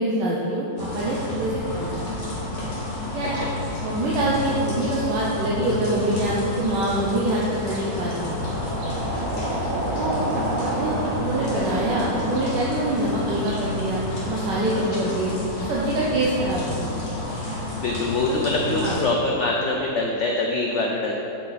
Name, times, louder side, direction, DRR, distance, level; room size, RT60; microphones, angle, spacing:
voice 1, 0.0-2.0 3.1-3.4 3.8-8.4 9.9-10.2 10.6-14.0 14.3-15.3 15.6-16.8 18.3-18.4 18.8-19.0, right 1 dB, 80° right, -5 dB, 1.4 m, -25 dB
sound 1, 0.8-19.0, left 2 dB, 45° left, 1.6 m, -30 dB
voice 2, 3.2-3.6 15.0-15.1 17.8-21.1, left 2 dB, 85° left, 0 dB, 0.6 m, -24 dB
sound 2, 6.0-14.4, right 1 dB, 40° right, 0.8 m, -31 dB
6.7 x 6.0 x 4.0 m, 2.9 s
omnidirectional pair, 1.9 m